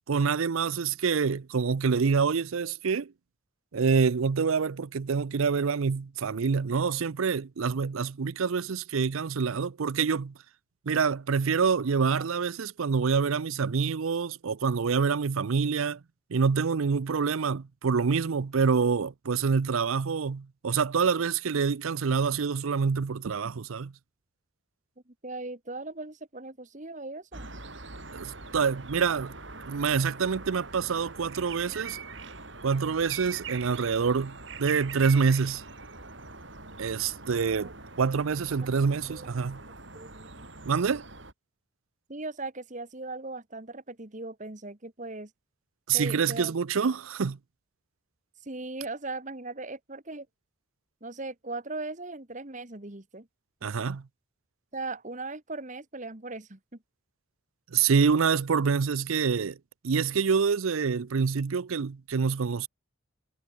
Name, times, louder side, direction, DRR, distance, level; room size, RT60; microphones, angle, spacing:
voice 1, 0.1-3.1 3.7-10.3 10.9-16.0 16.3-23.9 28.1-29.3 29.6-32.0 32.6-35.6 36.8-39.6 40.6-41.1 45.9-47.4 53.6-54.1 57.7-59.6 59.8-62.7, right 5 dB, 80° right, 0.5 m, -26 dB
voice 2, 25.1-27.5 37.6-37.7 39.1-39.3 39.9-40.5 42.1-45.3 45.9-46.5 48.4-50.3 51.0-53.3 54.7-56.6, right 2 dB, 35° right, 1.6 m, -38 dB
sound 1, 27.3-41.3, right 4 dB, 60° right, 5.4 m, -43 dB
head